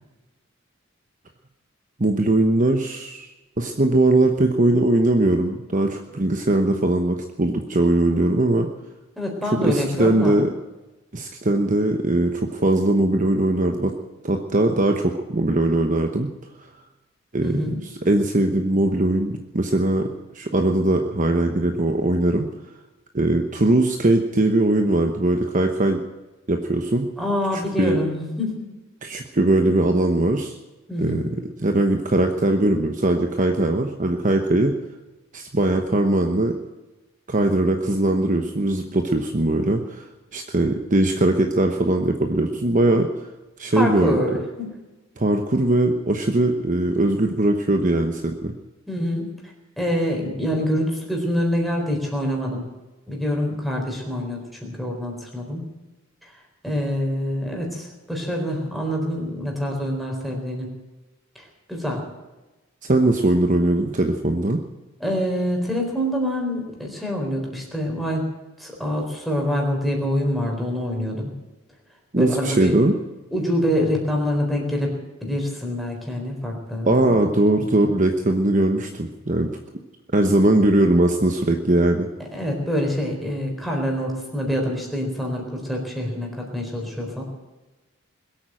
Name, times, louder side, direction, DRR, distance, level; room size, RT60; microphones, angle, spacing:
voice 1, 2.0-8.7 9.4-10.5 11.1-14.0 14.2-16.3 16.6-16.7 17.3-22.5 23.1-26.0 26.5-27.1 27.5-28.0 29.0-30.5 31.0-31.2 31.6-34.7 35.3-36.6 37.3-40.1 40.3-43.1 43.6-44.2 45.2-48.5 62.8-64.6 72.1-72.9 76.9-79.5 80.1-82.1, right 1 dB, 35° right, 5 dB, 1.0 m, -20 dB
voice 2, 9.2-10.4 17.4-17.8 27.2-28.7 30.9-31.4 43.7-44.7 48.9-49.3 49.8-52.7 53.1-55.7 56.2-56.3 56.6-60.7 61.7-62.0 65.0-68.2 68.6-71.3 72.2-72.7 73.3-75.0 75.2-77.2 82.3-87.2, equal, ahead, 0 dB, 4.1 m, -26 dB
21.5 x 8.8 x 7.6 m, 1.1 s
head